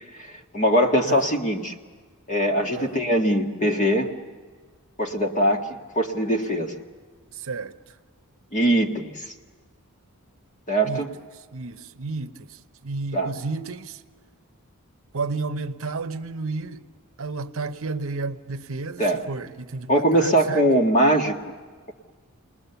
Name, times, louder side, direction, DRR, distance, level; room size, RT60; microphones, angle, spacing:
voice 1, 0.5-1.7 2.3-4.1 5.0-5.6 6.0-6.8 8.5-9.3 10.7-11.1 13.1-13.3 19.0-19.2 19.9-21.4, right 1 dB, 35° left, 1.7 m, -21 dB
voice 2, 7.3-7.8 10.8-14.0 15.1-16.9 17.2-20.6, right 3 dB, 65° right, 0.8 m, -32 dB
29.5 x 20.0 x 6.9 m
head